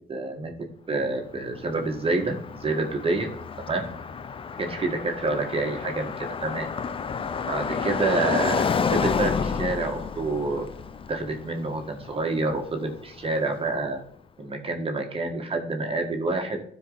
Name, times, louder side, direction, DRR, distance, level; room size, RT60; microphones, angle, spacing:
voice 1, 0.1-0.5 0.9-3.3 3.7-3.9 4.6-6.7 7.5-10.6 11.1-14.0 14.4-16.6, right 3 dB, 35° right, 3 dB, 1.7 m, -28 dB
Car passing by, 1.3-13.4, left 5 dB, 30° left, 0.6 m, -30 dB
12.5 x 4.7 x 4.0 m, 0.67 s
cardioid pair, 90°, 17 cm